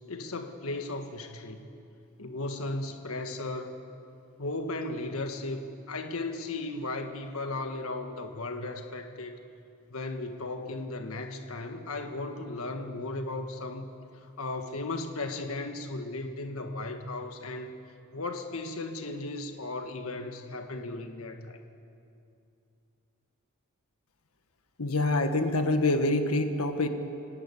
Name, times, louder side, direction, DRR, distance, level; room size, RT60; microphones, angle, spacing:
voice 1, 0.1-1.7 2.2-3.7 4.4-9.3 9.9-13.9 14.1-17.7 18.1-21.6, left 2 dB, 70° left, 6 dB, 1.5 m, -36 dB
voice 2, 24.8-26.9, left 2 dB, 90° left, 6 dB, 1.5 m, -26 dB
29.0 x 18.0 x 8.4 m, 2.6 s
head